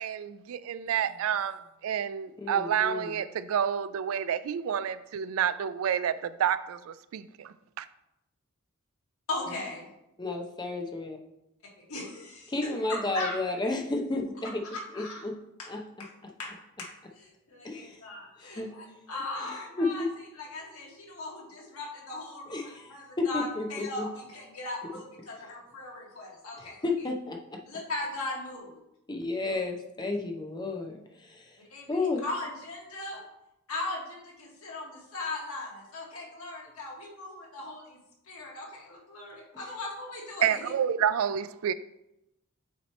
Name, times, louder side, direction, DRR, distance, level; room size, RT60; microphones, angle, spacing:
voice 1, 0.0-7.9 40.4-41.7, right 8 dB, 75° right, 0.3 m, -29 dB
voice 2, 2.4-3.2 10.2-11.2 12.5-14.6 14.9-15.3 15.7-15.8 17.6-18.0 18.4-18.7 19.8-19.9 22.5-22.9 23.2-24.1 26.8-27.4 29.1-31.6 31.9-32.2, left 3 dB, 20° left, 0.6 m, -32 dB
voice 3, 9.3-9.9 11.9-13.4 14.7-15.3 15.6-15.7 16.0-16.1 16.4-16.5 16.8-26.8 27.7-28.8 31.7-33.2 33.7-38.0 38.2-40.7, left 2 dB, 85° left, 1.8 m, -38 dB
8.4 x 3.0 x 4.2 m
head